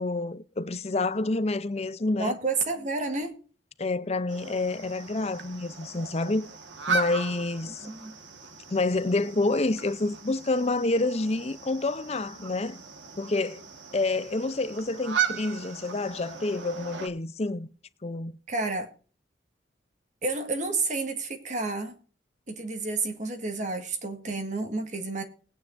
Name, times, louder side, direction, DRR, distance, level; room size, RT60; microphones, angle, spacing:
voice 1, 0.0-2.4 3.8-6.5 6.9-7.9 8.7-12.8 13.2-13.6 13.9-17.7 18.0-18.3, left 2 dB, 35° left, 0.6 m, -28 dB
voice 2, 2.2-3.3 7.8-8.1 18.5-18.9 20.2-21.9 22.5-25.2, right 3 dB, 40° right, 1.6 m, -30 dB
sound 1, 4.3-17.1, right 6 dB, 80° right, 1.5 m, -36 dB
20.0 x 9.3 x 2.6 m
head